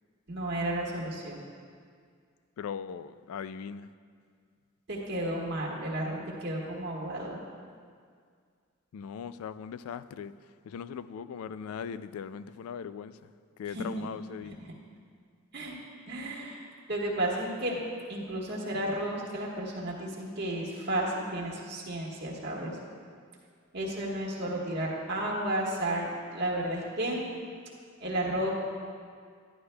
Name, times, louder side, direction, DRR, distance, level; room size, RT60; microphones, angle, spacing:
voice 1, 0.3-1.4 4.9-7.4 13.7-14.0 15.5-15.7 16.1-17.8 18.1-22.8 23.7-27.2 28.0-28.5, right 1 dB, 55° right, -3 dB, 1.5 m, -32 dB
voice 2, 2.6-3.9 8.9-10.3 10.6-13.3 13.6-14.6, left 7 dB, 85° left, 15 dB, 0.3 m, -39 dB
11.5 x 11.0 x 2.3 m, 2.1 s
head